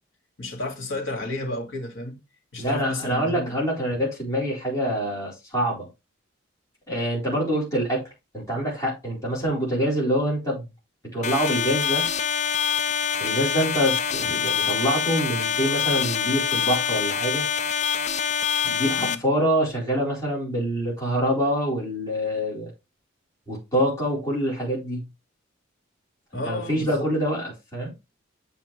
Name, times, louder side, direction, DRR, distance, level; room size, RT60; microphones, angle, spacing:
voice 1, 0.4-2.2 2.5-3.6 19.0-19.2 26.3-27.1, left 2 dB, 80° left, 2.1 m, -32 dB
voice 2, 2.6-5.9 6.9-8.1 8.3-10.6 11.1-12.1 13.2-17.4 18.6-22.7 23.5-25.1 26.5-27.9, equal, 15° left, 4.5 m, -25 dB
sound 1, 11.2-19.1, left 7 dB, 35° left, 0.5 m, -25 dB
7.8 x 5.4 x 3.4 m
head